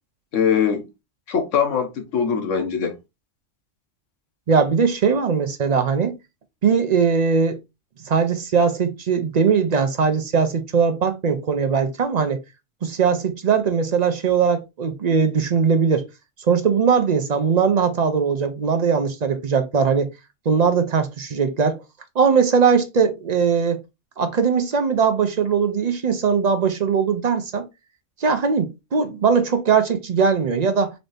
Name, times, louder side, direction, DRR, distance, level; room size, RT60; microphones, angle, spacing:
voice 1, 0.3-0.9 1.3-2.9, left 7 dB, 85° left, 1.3 m, -22 dB
voice 2, 4.5-6.1 6.6-7.6 8.0-12.4 12.8-16.0 16.5-20.1 20.5-21.8 22.2-23.8 24.2-27.7 28.2-30.9, right 6 dB, 50° right, 0.5 m, -20 dB
4.0 x 2.6 x 3.3 m
omnidirectional pair, 1.3 m